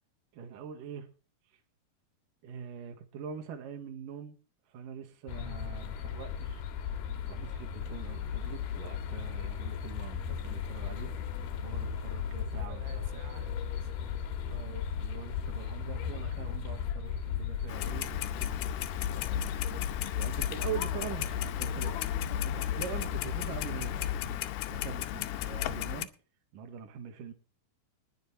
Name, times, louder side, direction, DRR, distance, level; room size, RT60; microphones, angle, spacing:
voice 1, 0.3-1.1 2.4-4.4 4.7-6.6 7.3-11.1 11.6-13.2 14.5-18.5 20.2-22.0 22.4-24.4 24.7-26.1 26.5-27.3, right 7 dB, 60° right, 3.2 m, -43 dB
sound 1, 5.3-24.4, left 8 dB, 75° left, 3.2 m, -37 dB
voice 2, 12.4-14.3 19.2-19.4, right 9 dB, 85° right, 3.3 m, -54 dB
Clock, 17.7-26.1, left 11 dB, 90° left, 2.9 m, -34 dB
20.0 x 7.9 x 4.5 m
omnidirectional pair, 4.6 m